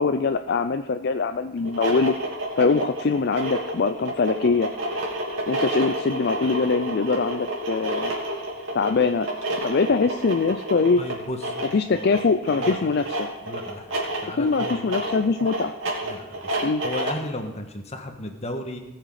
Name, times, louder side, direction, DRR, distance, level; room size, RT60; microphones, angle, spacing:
voice 1, 0.0-2.2 2.6-4.7 5.5-8.1 8.7-9.3 9.6-11.0 11.7-13.3 14.4-15.7 16.6-16.8, left 4 dB, 55° left, 8 dB, 0.5 m, -23 dB
sound 1, 1.6-17.3, right 1 dB, 75° right, 3.0 m, -30 dB
voice 2, 11.0-11.4 11.9-12.1 12.5-12.9 13.4-14.9 16.0-16.5 16.8-18.8, left 1 dB, 35° left, 5 dB, 1.4 m, -34 dB
18.5 x 6.6 x 4.8 m, 1.1 s
head